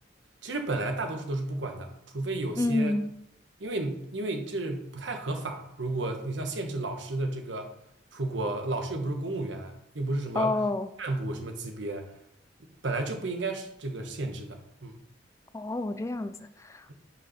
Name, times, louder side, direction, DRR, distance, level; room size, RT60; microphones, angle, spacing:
voice 1, 0.4-3.0 3.6-7.7 8.1-10.6 11.0-12.1 12.8-14.9, right 2 dB, 80° right, 1.1 m, -32 dB
voice 2, 2.6-3.1 10.4-10.9 15.5-16.9, left 2 dB, 15° left, 0.3 m, -29 dB
5.6 x 5.0 x 5.7 m
head